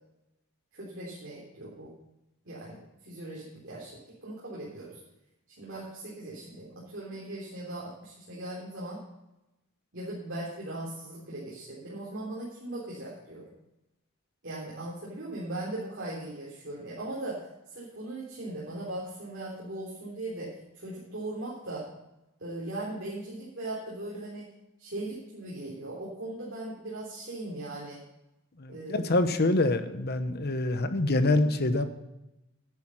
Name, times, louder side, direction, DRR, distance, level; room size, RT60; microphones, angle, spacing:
voice 1, 0.7-1.9 2.5-5.0 5.5-9.0 9.9-13.5 14.4-21.9 22.4-24.5 24.8-28.0 28.7-29.1, right 1 dB, 60° right, -6 dB, 3.7 m, -39 dB
voice 2, 28.6-31.8, left 2 dB, 50° left, 10 dB, 1.0 m, -26 dB
11.0 x 9.5 x 5.6 m, 0.93 s
head